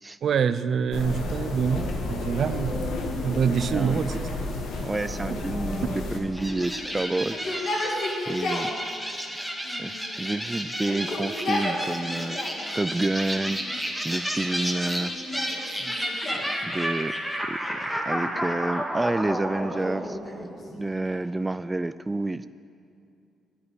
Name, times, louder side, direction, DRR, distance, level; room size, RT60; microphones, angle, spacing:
voice 1, 0.2-2.9 3.2-4.3 5.3-5.4, right 7 dB, 60° right, 13 dB, 0.6 m, -26 dB
sound 1, 0.9-6.2, left 2 dB, 75° left, 1.9 m, -31 dB
voice 2, 4.8-8.7 9.8-12.4 12.7-13.7 14.0-15.1 15.8-15.9 16.3-17.2 17.5-20.4 20.7-22.5, right 2 dB, 15° right, 13 dB, 0.3 m, -29 dB
sound 2, 6.3-21.0, equal, ahead, 1.8 m, -32 dB
Yell, 6.4-8.8 9.6-10.4 10.8-12.7 13.4-14.0 14.7-16.6 17.9-18.8 19.6-21.3, left 1 dB, 55° left, 2.6 m, -34 dB
11.0 x 9.5 x 9.9 m, 2.5 s
cardioid pair, 90°, 0 cm